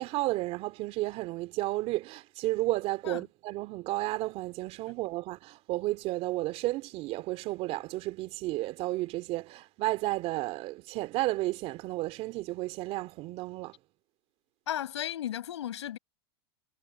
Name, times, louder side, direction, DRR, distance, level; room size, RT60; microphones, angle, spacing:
voice 1, 0.0-13.7, right 18 dB, 45° right, 2.8 m, -32 dB
voice 2, 14.7-16.0, left 11 dB, 90° left, 6.5 m, -34 dB
supercardioid pair, 120°, 14 cm